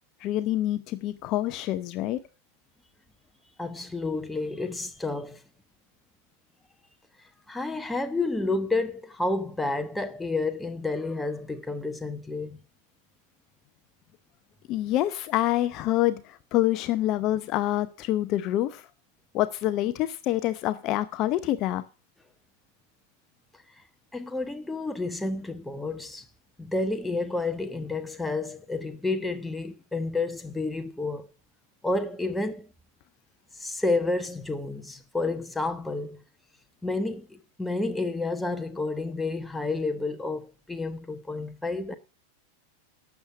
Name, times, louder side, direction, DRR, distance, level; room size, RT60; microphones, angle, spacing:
voice 1, 0.2-2.2 14.7-18.9 19.3-21.8, left 14 dB, 40° left, 0.7 m, -26 dB
voice 2, 3.6-5.4 7.5-12.6 24.1-26.2 26.6-31.3 31.8-32.7 33.5-36.2 36.8-42.0, left 2 dB, 5° left, 1.2 m, -30 dB
12.0 x 7.4 x 6.3 m
figure-of-eight pair, 90°, 0 cm